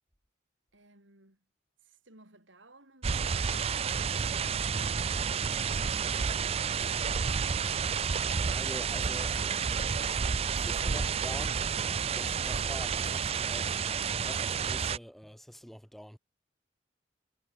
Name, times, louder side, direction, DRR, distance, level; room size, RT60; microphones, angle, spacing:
voice 1, 0.7-1.5 1.8-5.8 9.4-10.3, right 2 dB, 80° right, 6.9 m, -60 dB
sound 1, 3.0-15.0, right 6 dB, 30° right, 0.4 m, -30 dB
voice 2, 8.5-9.3 10.5-11.5 12.1-16.2, equal, ahead, 2.3 m, -46 dB
head